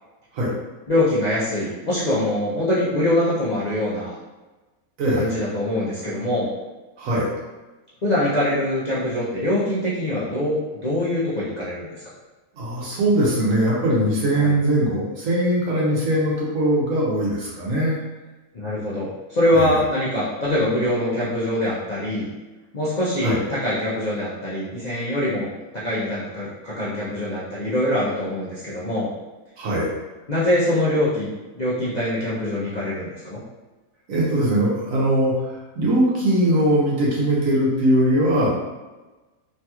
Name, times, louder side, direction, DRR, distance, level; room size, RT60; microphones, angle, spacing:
voice 1, 0.9-4.1 5.2-6.5 8.0-12.0 14.4-14.5 18.5-22.3 22.7-29.1 30.3-33.4, left 1 dB, 50° left, -10 dB, 0.5 m, -23 dB
voice 2, 5.0-5.3 7.0-7.3 12.5-18.0 19.5-19.7 23.2-23.4 29.6-29.9 34.1-35.3 35.8-38.5, right 1 dB, 65° right, -5 dB, 1.2 m, -20 dB
3.2 x 2.9 x 2.3 m, 1.2 s
omnidirectional pair, 1.6 m